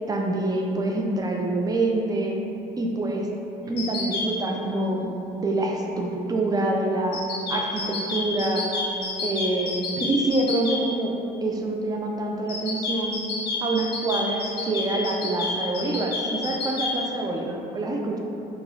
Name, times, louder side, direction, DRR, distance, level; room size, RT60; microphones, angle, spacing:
voice 1, 0.1-2.4 2.8-3.3 3.7-7.2 7.5-8.7 9.2-11.1 11.4-13.2 13.6-18.2, right 2 dB, 20° right, 1 dB, 0.4 m, -26 dB
sound 1, 3.8-4.3 7.1-10.8 12.5-16.9, left 4 dB, 75° left, 0.6 m, -29 dB
3.0 x 2.3 x 3.9 m, 2.8 s
cardioid pair, 110°, 17 cm